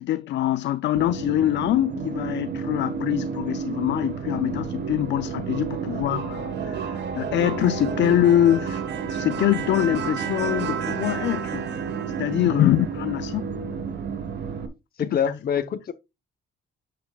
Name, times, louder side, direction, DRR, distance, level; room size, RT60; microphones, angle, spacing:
voice 1, 0.0-8.8 9.1-11.7 12.2-13.5 15.0-15.2, left 13 dB, 65° left, 0.4 m, -24 dB
sound 1, 0.9-14.7, right 6 dB, 60° right, 1.4 m, -30 dB
voice 2, 15.0-15.9, left 8 dB, 50° left, 0.9 m, -26 dB
8.3 x 8.0 x 2.3 m
cardioid pair, 90°, 20 cm